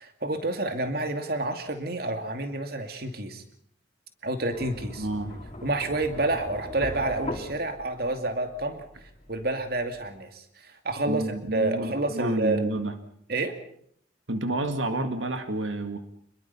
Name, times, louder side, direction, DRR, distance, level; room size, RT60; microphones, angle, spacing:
voice 1, 0.0-3.4 4.2-5.1 5.6-8.9 9.3-11.2 11.5-12.6 13.3-13.5, right 2 dB, 55° right, 6 dB, 2.5 m, -29 dB
sound 1, 4.5-10.2, left 1 dB, 30° left, 3.5 m, -40 dB
voice 2, 5.0-5.3 11.1-12.9 14.3-16.0, right 1 dB, 90° right, 7 dB, 2.1 m, -29 dB
27.0 x 21.5 x 5.7 m, 0.65 s
head